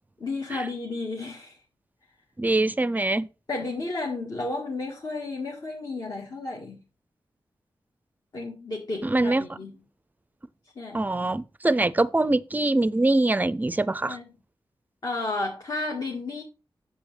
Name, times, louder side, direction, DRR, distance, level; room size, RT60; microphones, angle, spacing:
voice 1, 0.2-1.6 3.5-6.8 8.3-9.7 10.8-11.0 14.1-14.3 15.0-16.4, left 3 dB, 50° left, 1.8 m, -32 dB
voice 2, 2.4-3.3 9.0-9.4 10.9-14.2, right 2 dB, 20° right, 0.5 m, -23 dB
8.0 x 7.1 x 3.3 m
wide cardioid pair, 100°, 9 cm